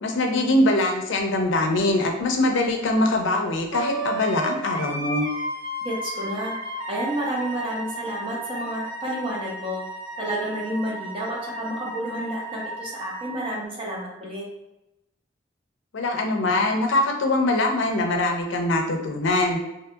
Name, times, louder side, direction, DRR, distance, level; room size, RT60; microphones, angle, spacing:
voice 1, 0.0-5.3 15.9-19.6, left 2 dB, 80° left, 3 dB, 0.5 m, -23 dB
Wind instrument woodwind instrument, 3.7-13.6, right 1 dB, 85° right, 0.5 m, -34 dB
voice 2, 5.8-6.6 6.9-9.8 10.2-14.5, right 1 dB, 30° right, -4 dB, 0.8 m, -30 dB
2.7 x 2.7 x 2.3 m, 0.92 s
head